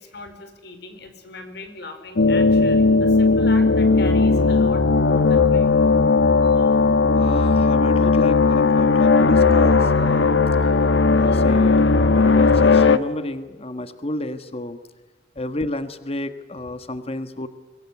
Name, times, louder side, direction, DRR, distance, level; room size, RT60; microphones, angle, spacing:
voice 1, 0.0-5.9 6.4-6.7 11.3-11.4, left 2 dB, 60° left, 7 dB, 4.9 m, -39 dB
sound 1, 2.2-13.0, left 4 dB, 90° left, 1.3 m, -17 dB
voice 2, 7.1-14.8 15.3-17.5, left 1 dB, 35° left, 10 dB, 1.5 m, -31 dB
25.5 x 22.0 x 9.8 m, 1.2 s
head